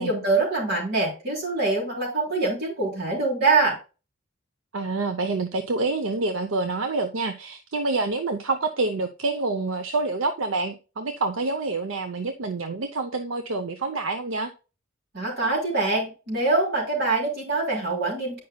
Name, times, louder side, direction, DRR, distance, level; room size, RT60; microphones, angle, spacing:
voice 1, 0.0-3.8 15.1-18.4, right 3 dB, 50° right, -1 dB, 3.6 m, -24 dB
voice 2, 4.7-14.5, right 3 dB, 75° right, 8 dB, 0.7 m, -27 dB
9.5 x 5.3 x 2.2 m, 0.32 s
head